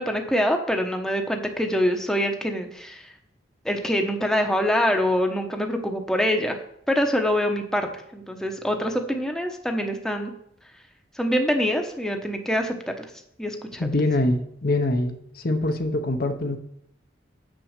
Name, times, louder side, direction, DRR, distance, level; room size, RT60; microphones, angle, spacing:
voice 1, 0.0-3.0 3.6-6.6 6.9-10.3 11.2-12.8 13.4-13.9, equal, 5° left, 3 dB, 1.0 m, -24 dB
voice 2, 13.8-15.2 15.4-16.6, left 2 dB, 50° left, 6 dB, 0.8 m, -23 dB
8.3 x 6.1 x 6.6 m, 0.71 s
head